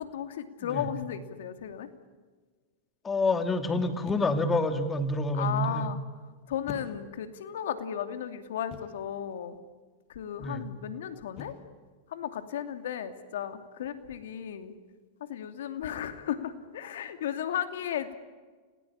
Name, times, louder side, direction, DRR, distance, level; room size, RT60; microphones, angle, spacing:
voice 1, 0.0-1.9 5.3-6.0 6.5-9.6 10.1-11.5 12.1-14.7 15.2-18.2, left 9 dB, 75° left, 9 dB, 2.6 m, -35 dB
sound 1, 1.6-1.9 4.0-4.6 6.7-7.4 8.7-9.2 11.4-11.8, left 7 dB, 40° left, 5.8 m, -45 dB
voice 2, 3.0-5.9 10.4-10.6, left 2 dB, 20° left, 8 dB, 2.8 m, -28 dB
30.0 x 19.0 x 8.8 m, 1.5 s
hypercardioid pair, 110°, 0 cm